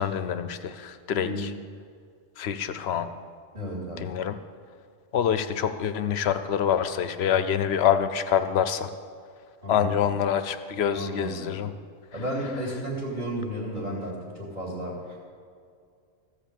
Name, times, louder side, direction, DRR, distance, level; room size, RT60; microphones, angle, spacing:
voice 1, 0.0-1.5 2.4-3.1 4.0-4.4 5.1-8.9 9.7-11.7, left 8 dB, 60° left, 10 dB, 0.8 m, -26 dB
voice 2, 1.2-1.5 3.5-4.1 9.6-10.0 10.9-11.5 12.1-15.2, right 1 dB, 35° right, -4 dB, 2.8 m, -33 dB
14.5 x 5.1 x 7.5 m, 2.3 s
omnidirectional pair, 1.3 m